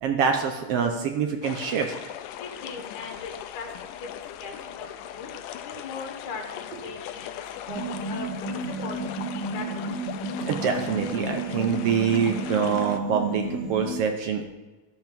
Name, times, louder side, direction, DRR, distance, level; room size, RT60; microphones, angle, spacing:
voice 1, 0.0-1.9 10.5-14.5, right 6 dB, 70° right, 4 dB, 1.4 m, -25 dB
sound 1, 1.4-13.0, left 11 dB, 85° left, 2.2 m, -39 dB
voice 2, 2.4-3.7 4.1-4.9 5.1-5.3 5.6-7.4 7.7-8.5 8.8-9.0 9.3-9.9, left 4 dB, 65° left, 2 dB, 2.7 m, -39 dB
sound 2, 7.7-14.0, right 2 dB, 45° right, 2.9 m, -32 dB
12.0 x 5.5 x 6.0 m, 1.2 s
omnidirectional pair, 3.7 m